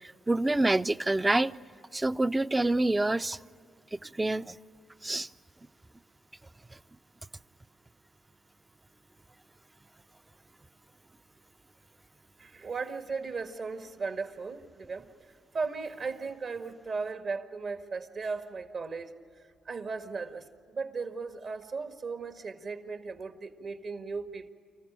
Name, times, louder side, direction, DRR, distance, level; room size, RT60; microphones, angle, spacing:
voice 1, 0.0-1.5 1.9-3.4 3.9-4.6 5.0-5.3, right 2 dB, 20° right, 15 dB, 0.6 m, -27 dB
voice 2, 12.4-15.1 15.5-19.1 19.7-24.5, right 4 dB, 60° right, 7 dB, 1.8 m, -36 dB
26.5 x 15.0 x 8.8 m, 2.4 s
supercardioid pair, 50°, 0 cm